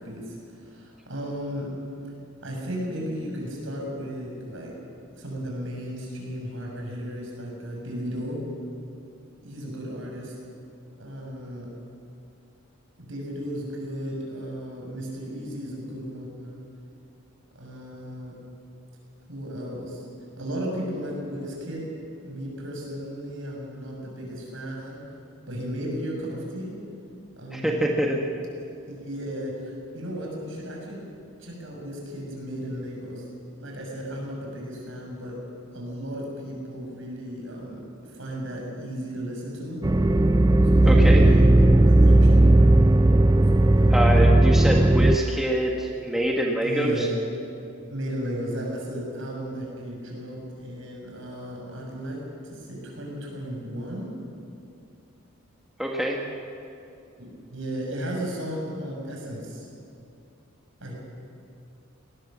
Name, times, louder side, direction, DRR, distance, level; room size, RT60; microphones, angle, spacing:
voice 1, 0.0-1.7 2.4-4.7 5.1-8.4 9.4-10.3 11.0-11.7 13.0-16.6 17.5-18.3 19.3-20.1 20.4-21.8 22.2-25.0 25.5-26.7 27.4-27.8 28.9-31.0 31.4-33.2 33.6-35.3 35.7-39.8 40.6-42.8 43.5-43.9 46.6-47.1 47.9-52.2 52.4-54.1 57.2-59.7 60.8-60.9, equal, 60° right, -1 dB, 6.3 m, -35 dB
voice 2, 27.5-28.2 40.9-41.2 43.9-47.1 55.8-56.2, right 1 dB, ahead, -1 dB, 1.4 m, -25 dB
sound 1, 39.8-45.2, right 1 dB, 15° right, 0.4 m, -16 dB
19.0 x 19.0 x 7.4 m, 2.6 s
head